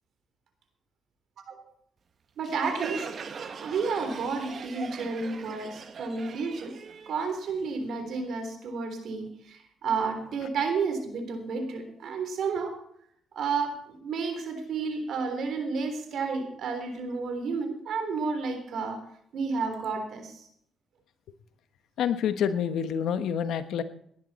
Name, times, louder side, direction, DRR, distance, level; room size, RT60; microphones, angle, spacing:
voice 1, 1.4-1.7 2.4-3.2 3.6-6.8 7.1-12.8 13.3-19.0 19.3-20.5, right 4 dB, 70° right, 7 dB, 3.5 m, -31 dB
Crowd, 2.4-7.9, right 6 dB, 50° right, 1.5 m, -40 dB
voice 2, 22.0-23.8, left 8 dB, 75° left, 10 dB, 1.2 m, -27 dB
18.5 x 11.0 x 4.3 m, 0.68 s
cardioid pair, 90°, 0 cm